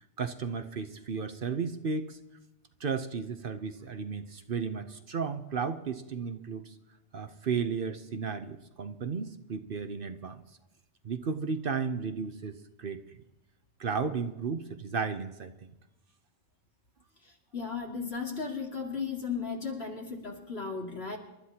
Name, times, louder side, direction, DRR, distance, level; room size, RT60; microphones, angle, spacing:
voice 1, 0.2-2.2 2.8-6.7 7.1-10.4 11.0-13.0 13.8-15.7, right 5 dB, 55° right, 8 dB, 1.0 m, -34 dB
voice 2, 17.5-21.2, left 5 dB, 65° left, 0 dB, 2.7 m, -35 dB
28.0 x 13.0 x 2.9 m, 0.95 s
omnidirectional pair, 1.1 m